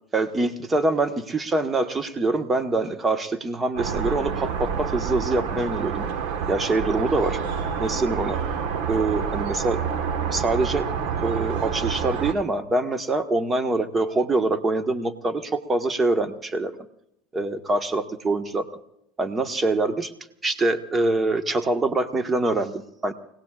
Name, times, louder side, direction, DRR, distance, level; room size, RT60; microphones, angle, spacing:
voice 1, 0.1-6.1 6.5-7.4 7.8-8.4 8.9-9.8 10.3-10.9 11.2-16.7 17.3-18.6 19.2-20.1 20.4-23.1, right 2 dB, 25° right, 8 dB, 1.5 m, -24 dB
sound 1, 3.8-12.3, right 6 dB, 65° right, 1.5 m, -28 dB
30.0 x 18.0 x 2.5 m, 0.80 s
hypercardioid pair, 85°, 0 cm